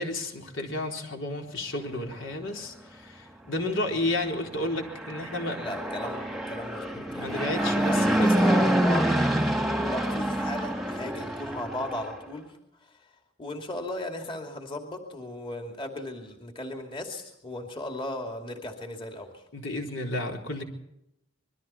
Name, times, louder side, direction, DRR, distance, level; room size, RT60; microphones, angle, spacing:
voice 1, 0.0-5.7 7.0-8.6 19.5-20.6, left 1 dB, 65° left, 2 dB, 4.0 m, -32 dB
Fixed-wing aircraft airplane, 4.8-12.1, right 1 dB, ahead, 1.6 m, -26 dB
voice 2, 5.5-13.1 13.4-19.4, left 1 dB, 25° left, 3 dB, 2.7 m, -37 dB
26.5 x 22.5 x 4.4 m, 0.83 s
head